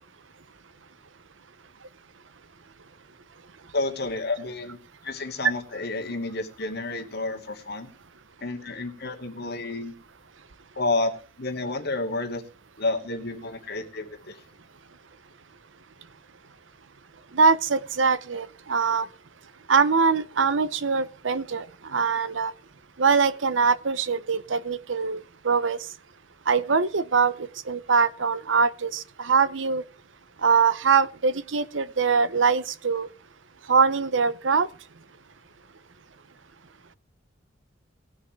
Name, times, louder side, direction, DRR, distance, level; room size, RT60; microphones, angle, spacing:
voice 1, 3.7-4.8 5.0-7.9 8.4-9.9 10.8-12.4 12.8-14.4, left 2 dB, 60° left, 2 dB, 2.4 m, -30 dB
voice 2, 17.3-19.1 19.7-21.6 21.9-22.5 23.0-25.8 26.5-27.3 27.7-29.8 30.4-33.1 33.7-34.7, right 5 dB, 80° right, 16 dB, 0.8 m, -23 dB
19.0 x 6.4 x 4.6 m, 0.35 s
head